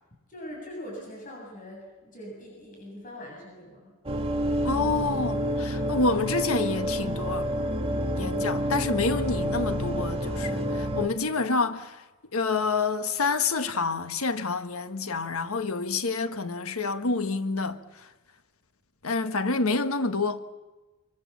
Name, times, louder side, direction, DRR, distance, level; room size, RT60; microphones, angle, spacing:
voice 1, 0.3-3.9, equal, 40° left, 7.8 m, -42 dB
sound 1, 4.0-11.1, equal, 25° right, 2.3 m, -28 dB
voice 2, 4.6-7.5 8.1-12.0 12.3-18.1 19.0-20.4, left 3 dB, 85° left, 1.4 m, -28 dB
26.0 x 24.5 x 7.4 m
head